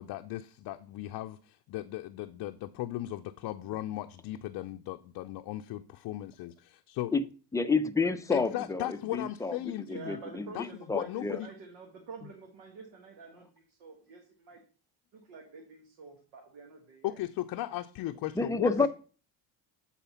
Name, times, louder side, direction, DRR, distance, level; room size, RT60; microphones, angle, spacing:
voice 1, 0.0-7.1 8.3-10.2 10.5-10.6 10.9-11.5 17.0-18.9, left 15 dB, 60° left, 0.5 m, -37 dB
voice 2, 7.5-11.4 18.4-18.9, left 4 dB, 10° left, 0.5 m, -30 dB
voice 3, 9.9-14.6 15.1-17.2 18.6-18.9, right 4 dB, 85° right, 1.9 m, -48 dB
8.0 x 4.3 x 5.6 m
cardioid pair, 110°, 43 cm